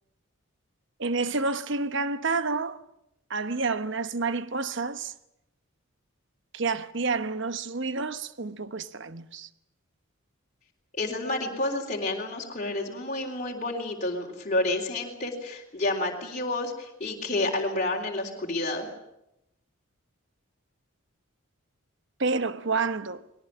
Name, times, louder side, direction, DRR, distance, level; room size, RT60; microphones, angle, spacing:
voice 1, 1.0-2.8 3.3-5.1 6.5-9.5 22.2-23.2, right 4 dB, 55° right, 1.1 m, -29 dB
voice 2, 10.9-18.9, left 2 dB, 35° left, 3.8 m, -30 dB
22.0 x 19.0 x 10.0 m
head